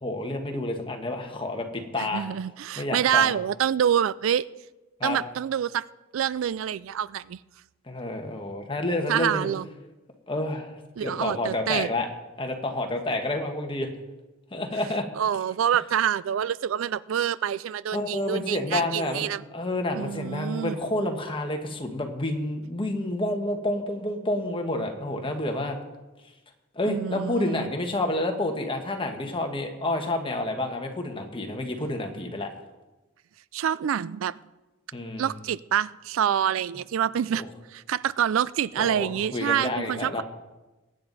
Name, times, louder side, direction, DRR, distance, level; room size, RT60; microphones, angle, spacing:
voice 1, 0.0-2.3 2.7-3.3 5.0-5.2 7.9-9.5 10.3-12.1 12.4-13.9 14.5-15.1 17.9-19.3 19.5-25.8 26.7-32.5 34.9-35.3 37.3-37.4 38.8-40.2, left 1 dB, 25° left, 4 dB, 1.4 m, -29 dB
voice 2, 2.0-4.4 5.0-5.8 6.1-7.4 9.1-9.7 11.0-11.9 15.2-19.4 19.9-20.8 26.9-27.7 33.5-34.3 35.2-37.4 37.7-40.2, right 9 dB, 75° right, 20 dB, 0.3 m, -26 dB
21.5 x 9.2 x 4.0 m, 1.1 s
head